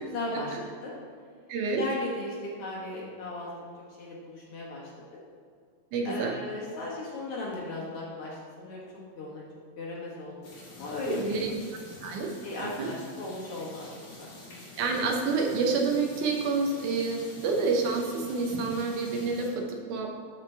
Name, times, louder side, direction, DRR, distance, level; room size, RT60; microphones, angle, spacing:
voice 1, 0.0-0.9 1.7-3.5 3.9-5.2 6.0-8.8 9.2-9.5 9.8-10.4 10.7-11.4 12.4-14.3, left 2 dB, 55° left, -5 dB, 2.2 m, -37 dB
voice 2, 1.5-1.8 5.9-6.3 11.0-11.5 12.0-12.3 12.8-12.9 14.8-20.2, right 4 dB, 85° right, 1 dB, 2.4 m, -28 dB
sound 1, 10.4-19.5, left 2 dB, 90° left, 3.6 m, -46 dB
12.5 x 5.1 x 3.4 m, 2.1 s
omnidirectional pair, 3.4 m